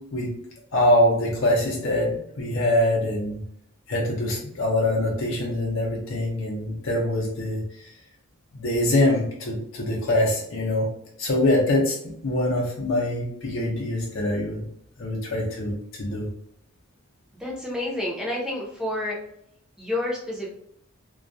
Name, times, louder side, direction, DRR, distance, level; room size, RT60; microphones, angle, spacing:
voice 1, 0.7-3.4 3.9-7.9 8.5-10.9 11.2-14.6 15.0-16.3, left 1 dB, 60° left, -3 dB, 0.6 m, -24 dB
voice 2, 17.4-19.2 19.8-20.5, left 1 dB, 5° right, -4 dB, 0.6 m, -29 dB
2.3 x 2.1 x 2.5 m, 0.72 s
head